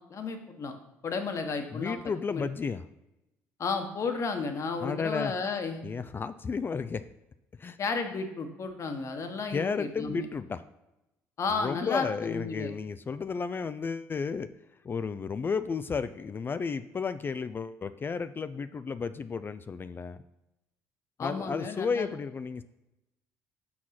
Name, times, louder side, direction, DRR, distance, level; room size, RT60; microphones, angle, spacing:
voice 1, 0.1-0.8 1.0-2.0 2.3-2.4 3.6-5.8 7.8-10.2 11.4-12.7 21.2-22.1, left 4 dB, 50° left, 6 dB, 1.3 m, -33 dB
voice 2, 1.7-2.8 4.8-5.3 5.8-7.1 7.6-7.8 9.5-10.6 11.5-14.5 14.8-20.2 21.2-22.6, left 5 dB, 30° left, 12 dB, 0.4 m, -33 dB
6.2 x 4.7 x 5.9 m, 0.94 s
supercardioid pair, 65°, 7 cm